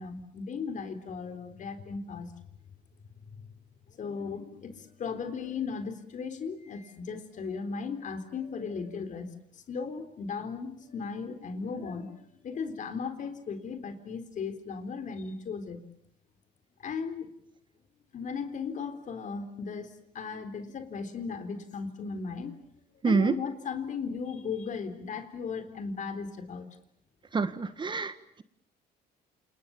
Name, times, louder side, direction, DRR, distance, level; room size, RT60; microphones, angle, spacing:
voice 1, 0.0-2.3 3.2-3.5 3.9-15.8 16.8-17.3 18.1-22.5 23.1-26.7, left 5 dB, 50° left, 9 dB, 3.9 m, -37 dB
voice 2, 23.0-23.3 27.3-28.1, right 4 dB, 30° right, 12 dB, 1.6 m, -26 dB
28.5 x 28.5 x 7.2 m, 0.73 s
cardioid pair, 110°, 17 cm